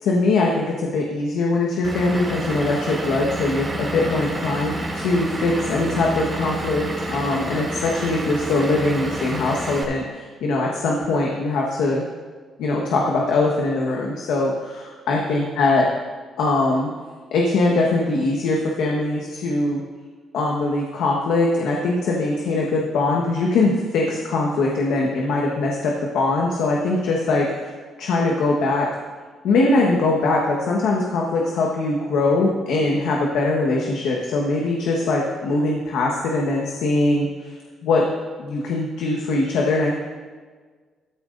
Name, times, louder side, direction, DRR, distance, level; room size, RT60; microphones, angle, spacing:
voice 1, 0.0-12.0 12.6-15.9 16.4-16.9 17.3-19.8 20.3-27.7 28.0-28.9 29.4-37.6 37.8-38.1 38.4-40.0, left 2 dB, 85° left, -2 dB, 1.4 m, -22 dB
Vehicle / Engine, 1.8-9.8, right 1 dB, 30° right, 2.6 m, -29 dB
14.0 x 13.0 x 2.6 m, 1.5 s
cardioid pair, 90°, 0 cm